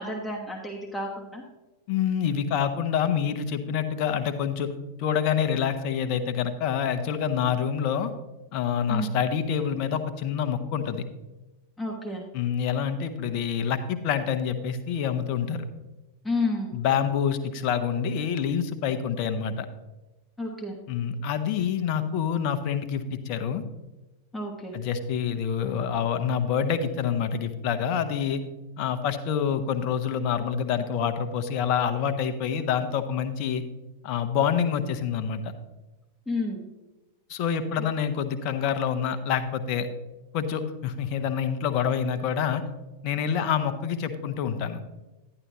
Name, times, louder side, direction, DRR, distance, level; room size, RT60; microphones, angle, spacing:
voice 1, 0.0-1.4 8.9-9.1 11.8-12.2 16.2-16.7 20.4-20.8 24.3-24.8 36.3-36.6, left 2 dB, 10° left, -1 dB, 1.3 m, -30 dB
voice 2, 1.9-4.7 5.0-8.1 8.5-11.0 12.3-15.6 16.7-19.7 20.9-23.6 24.7-28.4 28.8-33.6 34.0-35.4 37.3-39.9 40.3-42.6 43.0-44.8, left 8 dB, 40° left, 9 dB, 0.9 m, -27 dB
11.0 x 11.0 x 3.0 m, 1.1 s
figure-of-eight pair, 90°, 0 cm